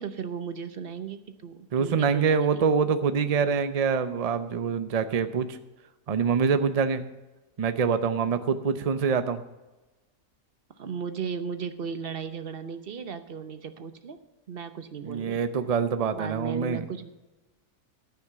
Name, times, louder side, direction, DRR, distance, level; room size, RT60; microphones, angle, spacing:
voice 1, 0.0-2.7 10.8-14.2 14.5-15.4 16.1-17.1, right 6 dB, 45° right, 10 dB, 0.9 m, -36 dB
voice 2, 1.7-5.6 6.1-7.0 7.6-9.4 15.1-16.9, right 6 dB, 75° right, 11 dB, 0.3 m, -25 dB
13.5 x 5.9 x 7.5 m, 1.1 s
omnidirectional pair, 1.6 m